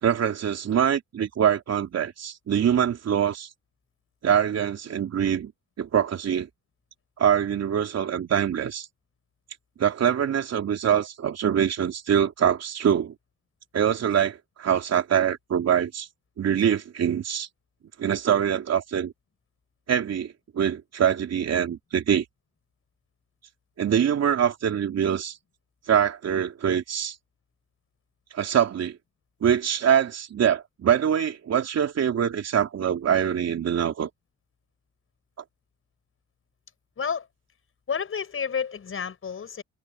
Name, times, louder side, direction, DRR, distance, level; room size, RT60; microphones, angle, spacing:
voice 1, 0.0-3.5 4.2-5.5 5.8-6.5 7.2-8.9 9.8-13.1 13.7-16.1 16.4-17.5 18.0-19.1 19.9-22.2 23.8-25.4 25.9-27.1 28.3-29.0 29.4-34.1, right 8 dB, 60° right, 3.4 m, -24 dB
voice 2, 37.0-37.3 37.9-39.6, left 6 dB, 45° left, 5.8 m, -30 dB
cardioid pair, 90°, 30 cm